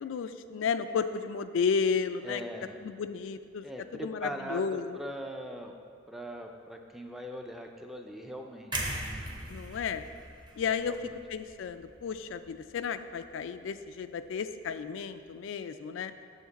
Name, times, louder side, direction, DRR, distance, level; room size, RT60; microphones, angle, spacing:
voice 1, 0.0-2.4 2.8-3.6 4.0-5.0 9.5-10.1 10.6-11.0 11.3-16.1, left 6 dB, 85° left, 10 dB, 0.3 m, -32 dB
voice 2, 2.2-2.8 3.6-5.7 6.1-9.3 10.8-11.1, equal, ahead, 3 dB, 0.4 m, -41 dB
sound 1, 8.7-12.7 13.1-13.3, right 1 dB, 25° right, 0.7 m, -39 dB
7.2 x 6.5 x 4.0 m, 2.3 s
head